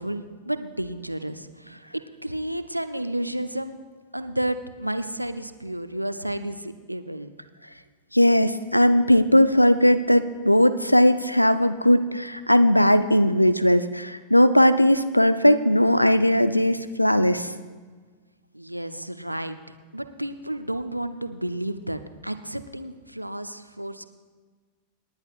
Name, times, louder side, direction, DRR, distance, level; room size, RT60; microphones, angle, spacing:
voice 1, 0.0-1.8 2.2-3.8 4.1-7.3 18.5-19.6 19.9-24.1, right 1 dB, 90° right, 10 dB, 0.6 m, -31 dB
voice 2, 8.1-17.5, equal, 90° left, 12 dB, 0.5 m, -18 dB
27.5 x 10.5 x 2.4 m, 1.5 s
figure-of-eight pair, 90°, 0 cm